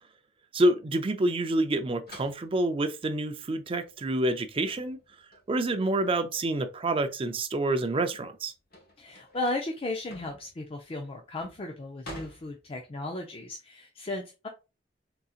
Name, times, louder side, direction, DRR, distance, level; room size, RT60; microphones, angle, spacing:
voice 1, 0.5-5.0 5.5-8.5, right 1 dB, 30° right, 0.4 m, -27 dB
sound 1, 2.1-7.1 7.5-13.1, equal, 60° left, 1.1 m, -49 dB
voice 2, 9.0-14.5, left 2 dB, 35° left, 0.4 m, -35 dB
3.8 x 2.8 x 2.4 m
head